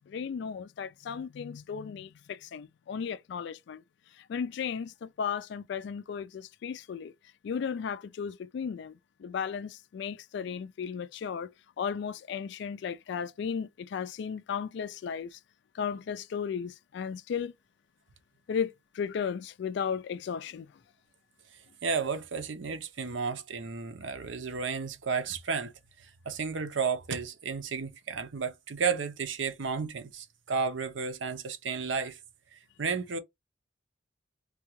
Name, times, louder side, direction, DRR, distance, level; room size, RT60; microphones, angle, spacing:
voice 1, 0.1-3.8 4.3-7.1 7.4-8.9 9.2-11.5 11.8-15.4 15.7-17.5 18.5-20.7, left 7 dB, 65° left, 0.3 m, -35 dB
voice 2, 21.8-25.7 26.0-32.2 32.8-33.2, right 5 dB, 80° right, 0.7 m, -32 dB
3.5 x 2.3 x 3.0 m
head